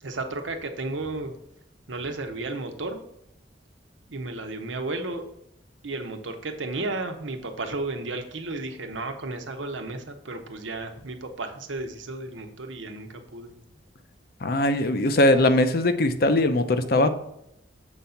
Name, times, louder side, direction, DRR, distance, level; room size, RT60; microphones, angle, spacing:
voice 1, 0.0-1.3 1.9-3.0 4.1-5.2 5.8-13.5, right 2 dB, 85° right, 6 dB, 1.0 m, -33 dB
voice 2, 14.4-17.1, left 1 dB, 50° left, 9 dB, 0.6 m, -20 dB
7.4 x 4.1 x 5.7 m, 0.81 s
head